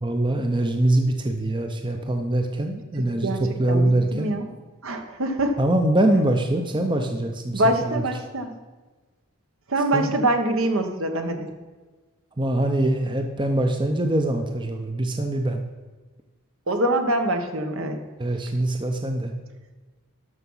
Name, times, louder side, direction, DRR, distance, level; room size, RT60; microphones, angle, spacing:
voice 1, 0.0-4.3 5.6-8.0 9.9-10.1 12.4-15.6 18.2-19.3, right 1 dB, 20° right, 4 dB, 0.7 m, -23 dB
voice 2, 3.2-4.4 4.8-5.6 7.5-8.5 9.7-11.5 16.7-18.0, right 1 dB, 60° right, 5 dB, 1.1 m, -24 dB
12.5 x 6.0 x 5.5 m, 1.3 s
head